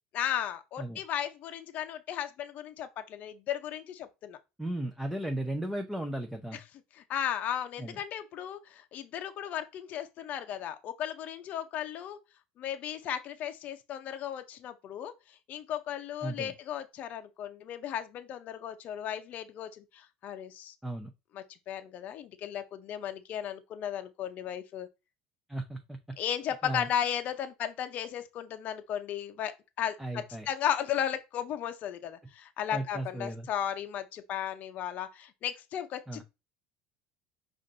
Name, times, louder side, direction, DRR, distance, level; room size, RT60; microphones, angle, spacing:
voice 1, 0.1-4.4 7.1-12.2 12.6-15.1 15.5-20.7 21.3-24.9 26.2-36.2, left 10 dB, 45° left, 0.6 m, -35 dB
voice 2, 4.6-6.6 7.8-8.0 16.2-16.5 20.8-21.1 25.5-26.2 26.6-26.9 30.0-30.5 32.7-33.5 36.1-36.2, right 1 dB, 5° right, 0.6 m, -35 dB
5.1 x 2.5 x 3.9 m
supercardioid pair, 120°, 4 cm